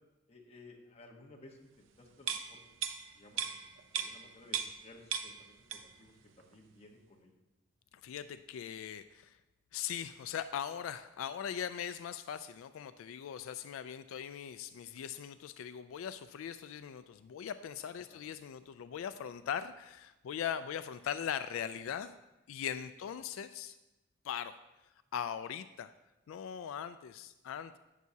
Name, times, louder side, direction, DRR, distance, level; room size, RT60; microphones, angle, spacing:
voice 1, 0.3-2.7 3.1-7.4 18.1-18.2, left 2 dB, 30° left, 0 dB, 1.1 m, -57 dB
sound 1, 2.2-4.9 5.1-6.1 6.4-6.5, right 7 dB, 65° right, 0.6 m, -38 dB
voice 2, 7.9-9.4 9.7-22.2 22.5-23.8 24.2-24.5 25.1-25.9 26.3-27.8, left 8 dB, 85° left, 12 dB, 0.3 m, -40 dB
11.0 x 8.2 x 2.8 m, 1.0 s
head